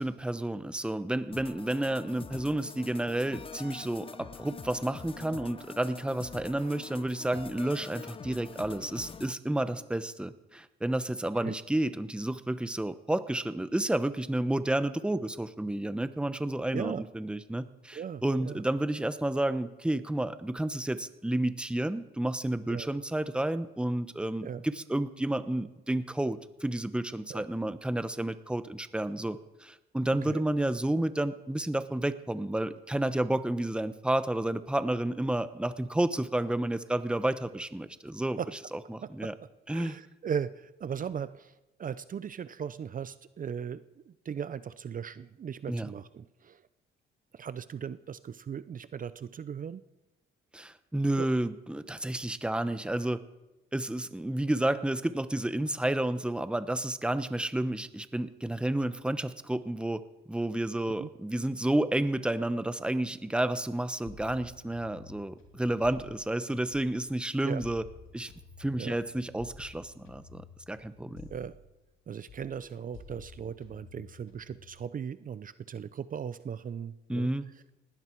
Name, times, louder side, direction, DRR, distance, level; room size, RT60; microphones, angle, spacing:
voice 1, 0.0-38.4 38.9-39.3 39.7-40.0 45.7-45.9 50.5-53.2 53.7-60.0 60.3-67.8 68.1-68.3 68.6-71.3 77.1-77.5, right 1 dB, 5° right, 12 dB, 0.9 m, -31 dB
sound 1, 1.3-9.3, left 5 dB, 25° left, 0.6 m, -45 dB
voice 2, 16.7-17.0 17.9-18.6 22.7-22.9 24.4-24.6 27.3-27.4 30.2-30.4 38.4-38.5 39.7-41.5 41.8-46.6 47.3-49.8 51.2-51.3 60.9-61.1 67.4-67.6 68.8-69.0 71.3-71.6 72.1-77.3, right 7 dB, 45° right, 14 dB, 0.7 m, -38 dB
sound 2, 64.1-67.2 67.6-72.0 72.3-74.7, left 5 dB, 75° left, 3.8 m, -52 dB
19.5 x 16.0 x 4.6 m, 1.0 s
cardioid pair, 90°, 20 cm